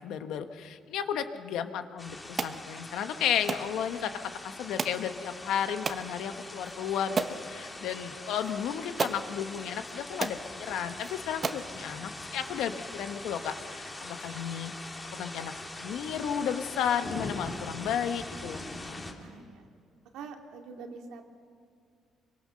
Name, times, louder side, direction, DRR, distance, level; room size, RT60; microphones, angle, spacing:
voice 1, 0.0-4.1 4.4-14.7 15.1-15.5 15.8-19.0, left 8 dB, 80° left, 8 dB, 1.4 m, -33 dB
sound 1, 2.0-19.1, left 2 dB, 15° left, 2.5 m, -42 dB
sound 2, 2.4-2.6 3.5-3.7 4.8-5.0 5.8-6.0 6.6-6.7 7.2-7.4 8.4-8.5 9.0-9.2 9.9-10.0 10.2-10.4 11.0-11.1 11.4-11.7, right 4 dB, 30° right, 1.1 m, -32 dB
voice 2, 19.2-19.7 20.1-21.2, right 5 dB, 80° right, 3 dB, 2.5 m, -44 dB
26.0 x 24.5 x 6.5 m, 2.3 s
cardioid pair, 135°, 0 cm